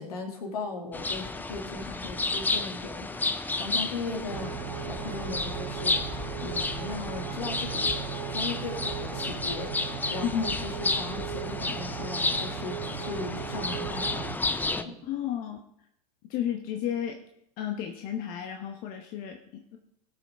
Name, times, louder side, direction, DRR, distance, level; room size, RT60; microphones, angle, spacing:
voice 1, 0.0-4.5 4.8-7.9 8.3-14.3 14.7-15.0, left 3 dB, 70° left, 2 dB, 2.6 m, -38 dB
sound 1, 0.9-14.8, left 3 dB, 10° left, 0.6 m, -32 dB
sound 2, 4.3-14.4, right 11 dB, 80° right, 0.5 m, -37 dB
voice 2, 10.2-10.5 15.0-15.6 16.2-17.2 17.6-19.8, left 10 dB, 45° left, 3 dB, 1.1 m, -32 dB
18.5 x 6.2 x 3.7 m, 0.76 s
hypercardioid pair, 90°, 20 cm